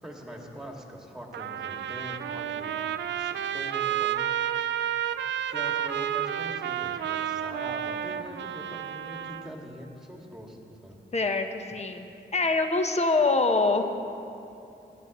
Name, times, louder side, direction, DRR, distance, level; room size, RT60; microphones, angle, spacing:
voice 1, 0.0-2.8 3.1-4.2 5.5-11.0, equal, 5° right, -1 dB, 2.2 m, -43 dB
Trumpet, 1.3-9.5, right 10 dB, 90° right, 0.4 m, -31 dB
voice 2, 11.1-12.1 12.3-13.8, left 3 dB, 35° left, 5 dB, 1.1 m, -24 dB
18.0 x 11.0 x 3.1 m, 2.7 s
cardioid pair, 70°, 18 cm